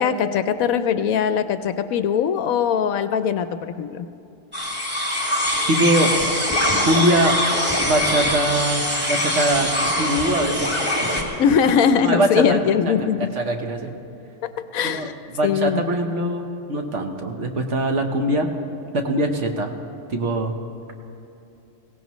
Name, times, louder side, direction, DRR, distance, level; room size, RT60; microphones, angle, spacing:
voice 1, 0.0-4.1 11.4-13.3 14.4-15.1 15.4-15.8, left 7 dB, 70° left, 10 dB, 1.0 m, -21 dB
sound 1, 4.5-11.2, left 1 dB, 5° right, 1.8 m, -23 dB
voice 2, 5.7-6.1 6.8-7.4 7.8-9.7 10.0-10.7 12.0-12.6 13.4-13.9 14.8-18.5 18.9-19.7 20.1-20.5, right 1 dB, 55° right, 3 dB, 1.4 m, -22 dB
22.0 x 17.0 x 3.1 m, 2.8 s
omnidirectional pair, 1.6 m